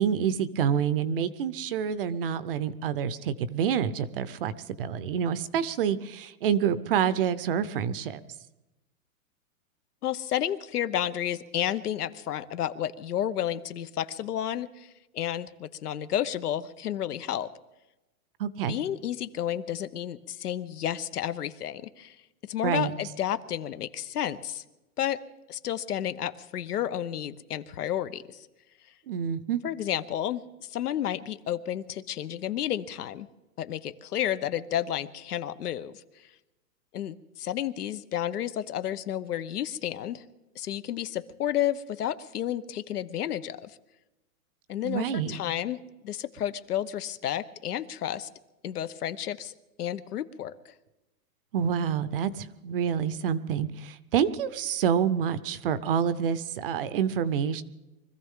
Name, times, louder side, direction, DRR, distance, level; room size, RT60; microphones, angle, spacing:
voice 1, 0.0-4.5 4.8-8.2 18.4-18.8 22.6-22.9 29.1-29.6 44.8-45.4 51.5-57.6, right 8 dB, 40° right, 16 dB, 0.7 m, -27 dB
voice 2, 10.0-17.5 18.7-22.2 22.4-24.6 25.0-25.2 25.5-28.5 29.6-33.3 33.6-36.0 36.9-40.2 40.5-43.8 44.7-48.3 48.6-50.5, left 11 dB, 85° left, 13 dB, 1.1 m, -31 dB
24.5 x 14.5 x 3.7 m, 1.0 s
hypercardioid pair, 160°, 45 cm